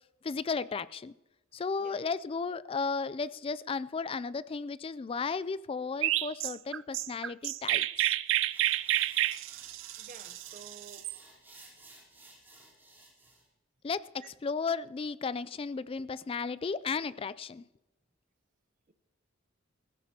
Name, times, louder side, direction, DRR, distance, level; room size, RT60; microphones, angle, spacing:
voice 1, 0.2-1.1 1.5-8.2 13.8-17.6, left 4 dB, 25° left, 0.3 m, -34 dB
Chirp tweet, 6.0-11.2, right 14 dB, 65° right, 0.3 m, -30 dB
sound 1, 8.3-13.4, right 2 dB, 10° right, 3.6 m, -56 dB
voice 2, 10.0-11.1 14.2-14.3 18.9-19.0, right 5 dB, 40° right, 0.7 m, -51 dB
16.5 x 15.0 x 2.9 m
head